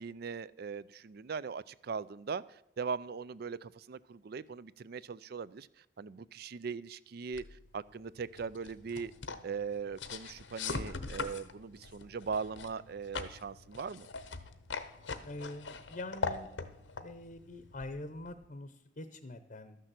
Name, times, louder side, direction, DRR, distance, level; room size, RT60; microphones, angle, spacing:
voice 1, 0.0-5.7 6.0-9.1 9.4-14.1, right 5 dB, 55° right, 18 dB, 0.4 m, -40 dB
sound 1, 7.3-18.4, left 4 dB, 85° left, 1.0 m, -42 dB
voice 2, 15.2-16.5 17.0-19.8, left 2 dB, 45° left, 10 dB, 0.8 m, -44 dB
12.5 x 6.7 x 7.6 m, 0.82 s
head